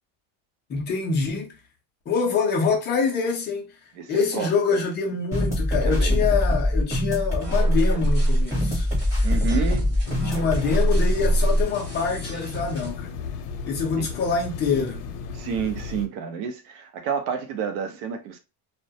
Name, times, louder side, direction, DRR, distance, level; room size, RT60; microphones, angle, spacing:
voice 1, 0.7-1.5 2.1-3.7 4.1-8.9 10.2-13.1 13.7-15.1, left 5 dB, 25° left, 0.3 m, -25 dB
voice 2, 3.9-4.8 5.8-6.2 9.2-9.9 14.0-14.1 15.3-18.4, right 6 dB, 80° right, 0.7 m, -30 dB
sound 1, 5.3-11.6, equal, 5° right, 0.9 m, -22 dB
sound 2, 7.4-12.9, right 1 dB, 30° right, 1.2 m, -41 dB
sound 3, 10.0-16.1, left 5 dB, 80° left, 0.6 m, -35 dB
2.2 x 2.1 x 2.6 m
cardioid pair, 165°, 49 cm